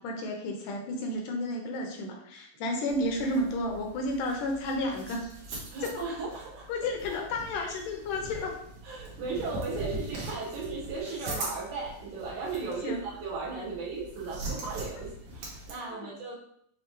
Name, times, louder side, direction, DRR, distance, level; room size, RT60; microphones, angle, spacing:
voice 1, 0.0-5.3 5.8-5.9 6.7-8.5 12.8-13.0 15.9-16.1, left 1 dB, 75° left, 2 dB, 2.1 m, -32 dB
sound 1, 2.9-15.8, right 2 dB, 65° right, 2.3 m, -42 dB
voice 2, 5.7-6.7 7.1-7.2 8.8-16.3, right 4 dB, 85° right, -5 dB, 3.0 m, -36 dB
6.4 x 2.7 x 3.0 m, 0.69 s
omnidirectional pair, 3.9 m